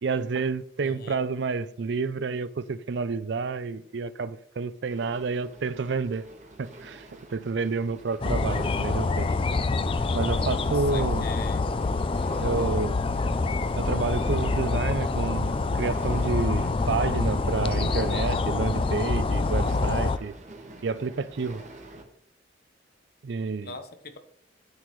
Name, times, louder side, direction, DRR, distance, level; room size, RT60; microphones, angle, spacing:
voice 1, 0.0-6.3 6.6-9.3 10.1-11.3 12.4-13.0 13.7-20.3 20.8-21.6 23.2-23.8, right 4 dB, 65° right, 0.4 m, -29 dB
voice 2, 0.8-1.2 10.9-11.7 23.6-24.2, left 3 dB, 55° left, 1.0 m, -40 dB
sound 1, 4.9-22.0, right 2 dB, 40° right, 1.3 m, -46 dB
sound 2, 8.2-20.2, left 3 dB, 30° left, 0.3 m, -26 dB
9.6 x 8.4 x 3.1 m
head